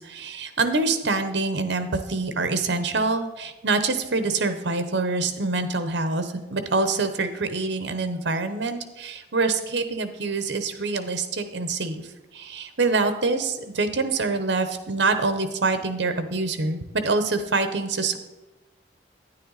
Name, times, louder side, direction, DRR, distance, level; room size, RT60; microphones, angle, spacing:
voice 1, 0.0-12.0 12.3-18.2, right 3 dB, 70° right, 9 dB, 0.9 m, -25 dB
9.9 x 9.8 x 4.0 m, 1.0 s
head